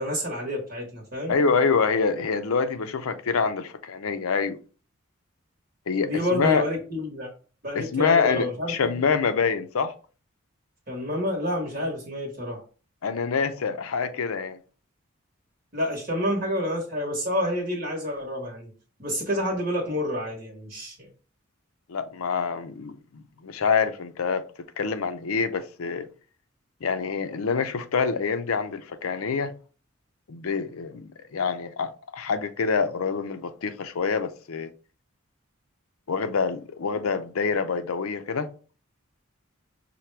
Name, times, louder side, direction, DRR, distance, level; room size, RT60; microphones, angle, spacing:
voice 1, 0.0-1.3 6.0-7.3 7.6-8.7 10.9-12.6 15.7-18.7 19.0-21.1, left 1 dB, 45° right, 1.1 m, -28 dB
voice 2, 1.3-4.6 5.9-6.6 7.8-9.9 13.0-14.6 21.9-24.5 24.8-26.1 26.8-29.5 30.3-34.7 36.1-38.5, left 5 dB, 80° left, 0.5 m, -26 dB
5.7 x 2.1 x 3.3 m
head